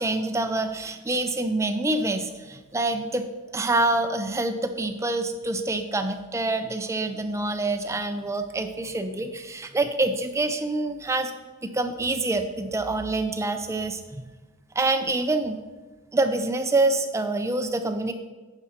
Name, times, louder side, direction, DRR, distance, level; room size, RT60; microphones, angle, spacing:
voice 1, 0.0-3.3 3.5-11.3 11.6-14.2 14.7-15.6 16.1-18.1, right 2 dB, 15° right, 7 dB, 0.5 m, -26 dB
9.7 x 5.0 x 4.3 m, 1.2 s
head